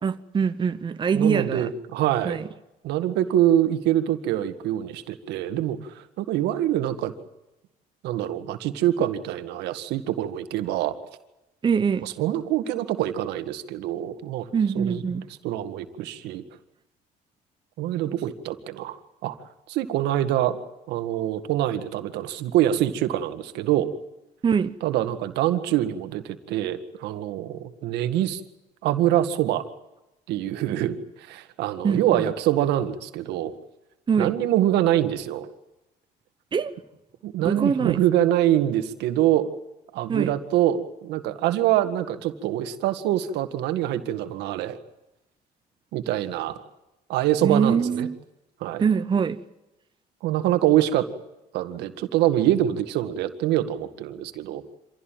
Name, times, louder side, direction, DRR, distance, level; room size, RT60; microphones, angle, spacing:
voice 1, 0.0-1.7 2.2-2.5 11.6-12.1 14.5-15.3 24.4-24.8 31.8-32.2 34.1-34.4 36.5-36.8 37.4-38.0 40.1-40.3 47.4-48.2 48.8-49.4, right 6 dB, 30° right, 0.9 m, -23 dB
voice 2, 1.1-2.4 2.8-7.1 8.0-11.0 12.0-14.5 14.8-15.0 15.4-16.4 17.8-19.0 19.2-19.4 19.7-20.6 20.9-23.9 24.8-28.4 28.8-29.6 30.3-33.5 34.2-35.5 37.2-39.5 39.9-44.8 45.9-46.6 47.1-48.1 48.6-48.8 50.2-51.1 51.5-54.6, right 12 dB, 85° right, 1.9 m, -25 dB
26.0 x 16.5 x 9.2 m
cardioid pair, 110°, 17 cm